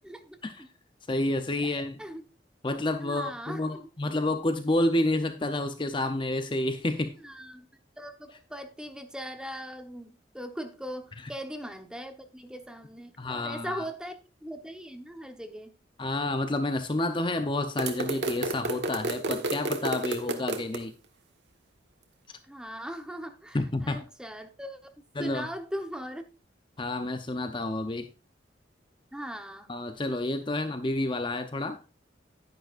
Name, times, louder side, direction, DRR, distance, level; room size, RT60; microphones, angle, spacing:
voice 1, 0.0-0.7 1.6-2.3 3.0-3.9 7.2-7.7 8.0-15.7 22.5-24.9 25.2-26.2 29.1-29.7, equal, 5° right, 1.0 m, -40 dB
voice 2, 1.1-2.0 2.6-7.2 13.2-13.8 16.0-20.9 23.5-24.0 25.2-25.5 26.8-28.1 29.7-31.8, left 2 dB, 30° left, 0.7 m, -29 dB
sound 1, 17.8-20.8, right 2 dB, 75° right, 1.4 m, -31 dB
10.5 x 10.5 x 2.5 m
head